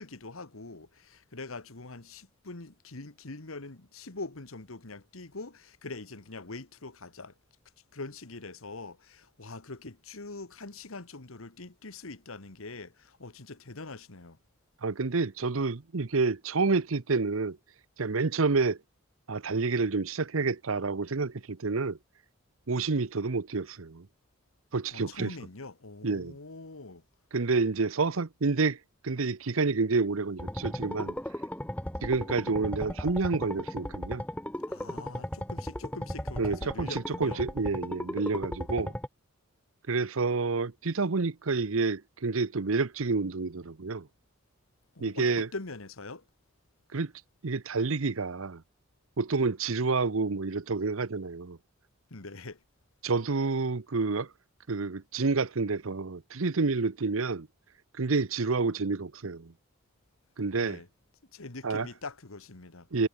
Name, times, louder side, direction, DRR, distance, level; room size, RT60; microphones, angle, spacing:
voice 1, 0.0-7.3 7.9-14.4 24.9-27.0 34.7-37.4 44.9-46.2 52.1-52.6 60.6-60.9 61.3-62.9, left 3 dB, 80° left, 1.7 m, -43 dB
voice 2, 14.8-17.6 18.0-18.8 19.3-22.0 22.7-24.1 24.7-25.3 26.0-26.4 27.3-28.8 29.0-31.2 32.0-34.2 36.4-38.9 39.9-44.1 45.0-45.5 46.9-47.1 47.4-48.6 49.2-51.6 53.0-54.3 54.7-57.5 58.0-59.5 60.4-60.8 61.6-61.9 62.9-63.1, right 4 dB, 75° right, 0.8 m, -29 dB
sound 1, 30.4-39.1, left 1 dB, 5° left, 1.4 m, -36 dB
head